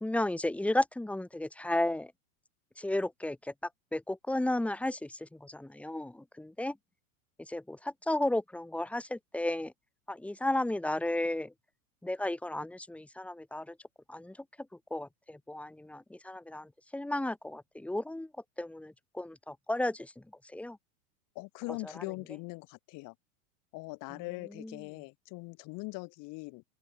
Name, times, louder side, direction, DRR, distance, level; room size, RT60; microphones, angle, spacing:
voice 1, 0.0-2.1 2.8-3.5 3.9-6.8 7.5-9.7 10.1-11.5 12.0-13.7 14.1-14.4 14.9-18.3 18.6-20.2 20.5-20.8 21.8-22.0 24.6-24.8, left 1 dB, 5° left, 0.9 m, -33 dB
voice 2, 21.4-23.1 23.7-26.6, left 26 dB, 45° left, 2.5 m, -41 dB
open air
hypercardioid pair, 110°, 43 cm